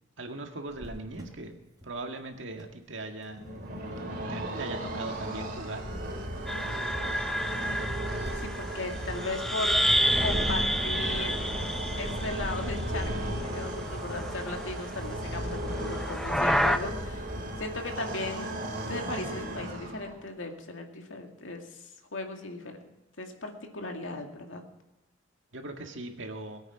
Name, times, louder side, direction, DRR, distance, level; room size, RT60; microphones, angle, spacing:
voice 1, 0.2-1.6 1.8-3.5 4.3-5.8 25.5-26.6, right 2 dB, 70° right, 4 dB, 1.9 m, -39 dB
Cricket, 0.7-12.1, equal, 20° right, 4.0 m, -52 dB
sound 1, 3.3-20.3, right 1 dB, 50° right, 3.2 m, -35 dB
sound 2, 6.5-13.2 13.4-14.8 15.7-16.8, equal, ahead, 0.6 m, -30 dB
voice 2, 8.4-9.8 10.2-11.3 12.0-17.3 17.6-18.5 18.9-22.8 23.2-24.6, left 2 dB, 75° left, 3 dB, 2.3 m, -37 dB
21.0 x 8.9 x 6.1 m, 1.1 s
head